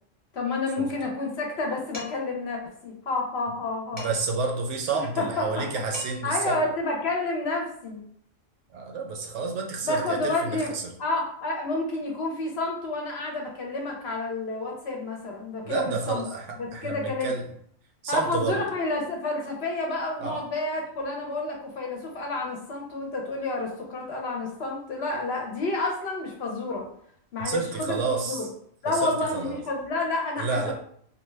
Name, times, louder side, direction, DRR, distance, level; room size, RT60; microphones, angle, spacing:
voice 1, 0.3-4.0 4.9-5.6 6.2-8.0 9.8-10.7 11.0-16.3 16.6-17.3 18.1-26.9 27.3-28.0 28.3-28.5 28.8-30.7, left 2 dB, 60° left, 0 dB, 0.8 m, -29 dB
Dishes pots and pans, 1.9-2.4 4.0-4.4 5.6-5.7 5.9-6.4, left 2 dB, 10° left, 0.7 m, -41 dB
voice 2, 3.9-6.6 8.7-10.8 15.6-16.5 16.7-17.4 18.0-18.6 20.2-20.4 27.4-28.5 28.9-29.6 30.4-30.7, right 4 dB, 70° right, 2 dB, 0.9 m, -30 dB
2.7 x 2.2 x 3.1 m, 0.65 s
omnidirectional pair, 1.3 m